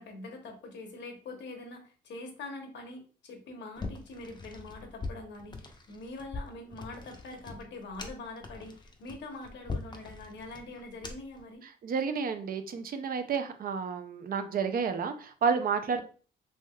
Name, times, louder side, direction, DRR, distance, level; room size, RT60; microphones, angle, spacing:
voice 1, 0.0-11.6 15.9-16.0, left 2 dB, 65° left, 4 dB, 0.9 m, -44 dB
sound 1, 3.8-11.4, left 3 dB, 20° left, 0.6 m, -42 dB
voice 2, 11.8-16.0, right 6 dB, 45° right, 8 dB, 0.4 m, -30 dB
3.3 x 2.7 x 2.2 m, 0.39 s
cardioid pair, 90°, 20 cm